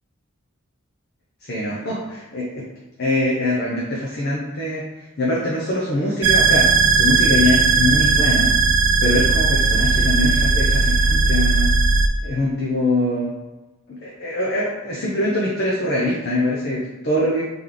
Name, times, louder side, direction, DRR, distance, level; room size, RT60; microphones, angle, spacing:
voice 1, 1.4-2.6 3.0-8.5 9.0-11.7 12.2-13.3 13.9-17.4, left 1 dB, 50° left, -4 dB, 0.7 m, -23 dB
sound 1, 6.2-12.1, right 4 dB, 75° right, 0.5 m, -17 dB
3.5 x 3.1 x 3.8 m, 1.1 s
head